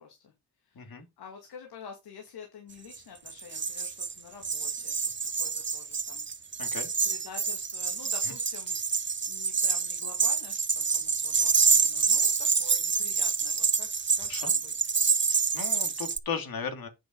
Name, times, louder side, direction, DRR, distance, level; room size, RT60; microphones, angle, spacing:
voice 1, 0.0-6.7 7.0-9.0 9.3-13.9 14.2-14.7, left 6 dB, 85° left, 2.5 m, -48 dB
sound 1, 2.9-3.0 3.3-16.2, right 5 dB, 30° right, 0.9 m, -27 dB
voice 2, 6.6-6.9 14.3-14.5 15.5-16.9, left 6 dB, 65° left, 3.0 m, -36 dB
9.0 x 6.2 x 5.4 m
cardioid pair, 60°, 37 cm